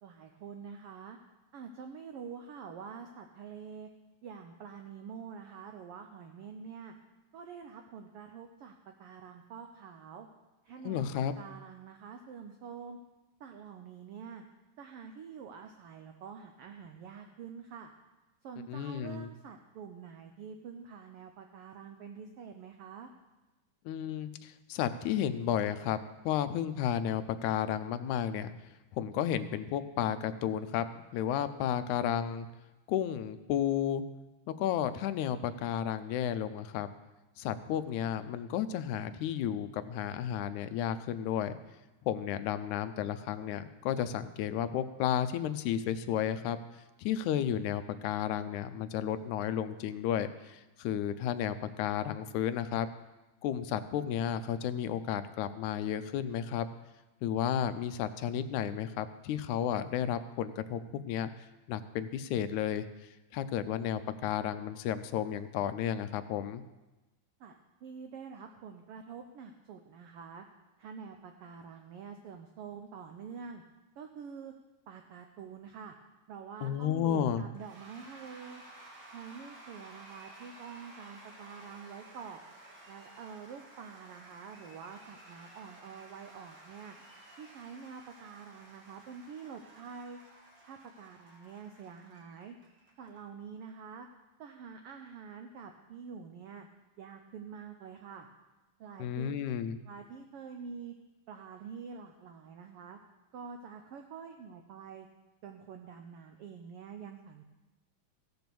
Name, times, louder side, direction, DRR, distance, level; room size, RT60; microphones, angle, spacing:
voice 1, 0.0-1.2 1.5-3.9 4.2-6.9 7.3-10.3 10.6-13.0 13.4-14.4 14.8-17.9 18.4-23.1 67.4-67.5 67.8-70.4 70.8-73.6 74.0-74.5 74.9-76.0 76.3-78.6 79.1-82.4 82.9-87.0 87.4-90.2 90.6-92.5 93.0-94.1 94.4-96.7 97.0-98.3 98.8-99.4 99.8-100.9 101.3-103.0 103.3-105.1 105.4-107.5, right 6 dB, 80° right, 5 dB, 1.3 m, -46 dB
voice 2, 10.9-11.3 18.7-19.3 23.9-26.0 26.2-28.5 28.9-30.9 31.1-32.5 32.9-34.0 34.6-36.9 37.4-41.6 42.0-46.6 47.0-52.9 53.4-56.7 57.2-61.3 61.7-62.9 63.3-66.6 76.6-77.4 99.0-99.8, left 9 dB, 80° left, 11 dB, 2.0 m, -32 dB
Cheering / Applause / Crowd, 77.5-93.2, right 2 dB, 40° right, 2.2 m, -54 dB
15.5 x 6.1 x 6.9 m, 1.1 s
omnidirectional pair, 3.5 m